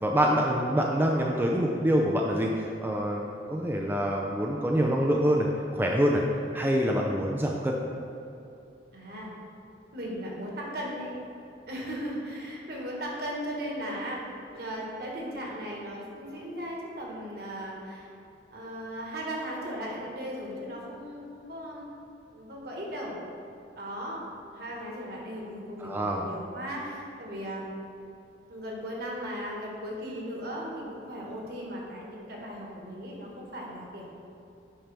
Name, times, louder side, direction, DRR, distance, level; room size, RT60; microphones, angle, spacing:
voice 1, 0.0-3.2 3.5-5.5 5.7-6.2 6.5-7.7 25.8-26.2, equal, 10° right, -1 dB, 0.4 m, -25 dB
voice 2, 8.9-9.3 9.9-11.2 11.7-14.2 14.5-18.1 18.5-21.9 22.3-23.2 23.8-24.2 24.5-27.7 28.5-34.1, equal, 60° right, -2 dB, 1.4 m, -37 dB
8.9 x 5.5 x 3.4 m, 2.7 s
head